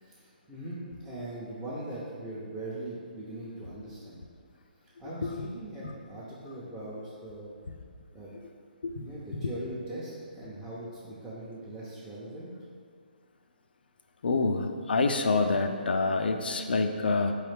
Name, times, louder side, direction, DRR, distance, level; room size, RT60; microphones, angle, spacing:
voice 1, 0.0-4.2 5.0-7.5 8.1-8.3 9.0-12.5, right 1 dB, 5° right, -11 dB, 0.7 m, -40 dB
voice 2, 14.2-17.3, left 3 dB, 75° left, 6 dB, 0.4 m, -27 dB
4.8 x 3.1 x 3.3 m, 2.1 s
hypercardioid pair, 145°, 5 cm